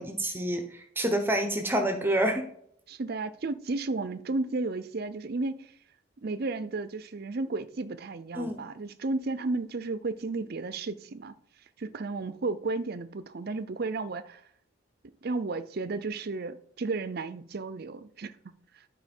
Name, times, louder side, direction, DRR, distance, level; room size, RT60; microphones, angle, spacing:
voice 1, 0.0-2.4 8.3-8.6, right 1 dB, 10° right, 0.9 m, -28 dB
voice 2, 2.9-5.7 6.2-11.3 11.8-14.4 15.2-18.5, right 3 dB, 50° right, 0.5 m, -33 dB
11.5 x 4.1 x 5.3 m
head